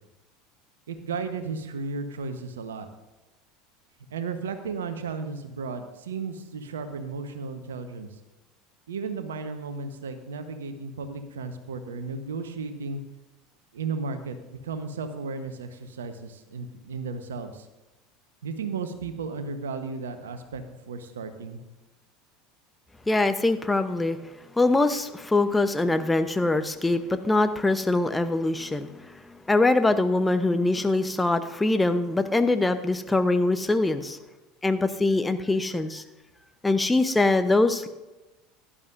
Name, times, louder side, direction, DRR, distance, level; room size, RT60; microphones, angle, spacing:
voice 1, 0.9-2.9 4.1-8.1 8.9-13.0 13.7-17.7 18.4-21.6, right 4 dB, 75° right, 9 dB, 1.1 m, -34 dB
voice 2, 23.1-24.2 24.5-34.2 34.6-36.0 36.6-37.9, left 2 dB, 10° left, 9 dB, 0.8 m, -23 dB
16.0 x 11.5 x 2.6 m, 1.1 s
figure-of-eight pair, 75°, 0 cm